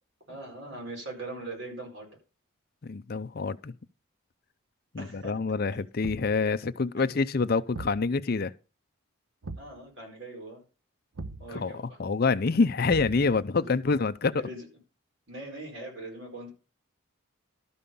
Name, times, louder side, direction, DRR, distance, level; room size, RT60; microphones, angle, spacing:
voice 1, 0.3-2.1 5.0-5.3 9.6-10.6 11.4-12.0 13.6-13.7 14.4-14.6 15.3-16.5, right 2 dB, 60° right, 4.5 m, -41 dB
voice 2, 2.8-3.7 4.9-8.5 11.5-14.4, left 4 dB, 45° left, 0.5 m, -27 dB
Thump thud, 6.0-6.5 7.7-8.1 9.4-9.8 11.2-11.5 12.9-13.4, right 2 dB, 85° right, 1.0 m, -39 dB
12.5 x 5.5 x 6.9 m
head